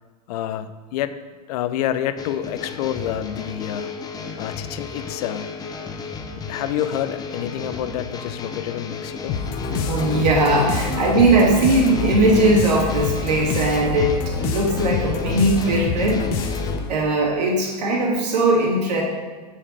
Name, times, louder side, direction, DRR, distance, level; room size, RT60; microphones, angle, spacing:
voice 1, 0.3-1.1 1.5-3.9 4.4-5.5 6.5-9.4, left 11 dB, 65° left, 12 dB, 0.6 m, -28 dB
sound 1, 2.2-16.8, left 5 dB, 20° left, 0.7 m, -34 dB
sound 2, 9.3-17.0, left 6 dB, 45° left, 0.9 m, -26 dB
voice 2, 9.7-16.5 16.9-19.0, right 2 dB, 80° right, -4 dB, 2.7 m, -19 dB
7.3 x 4.6 x 6.6 m, 1.4 s
hypercardioid pair, 115°, 21 cm